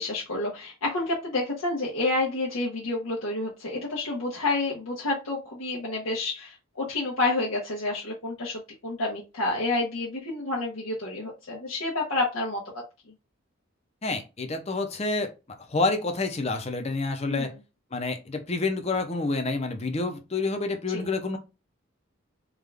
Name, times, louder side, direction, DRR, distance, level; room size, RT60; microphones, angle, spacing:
voice 1, 0.0-12.6 17.3-17.5, left 2 dB, 85° left, 1.0 m, -29 dB
voice 2, 14.0-15.3 15.7-17.5 17.9-21.4, left 3 dB, 30° left, 0.6 m, -28 dB
3.6 x 2.4 x 3.4 m
head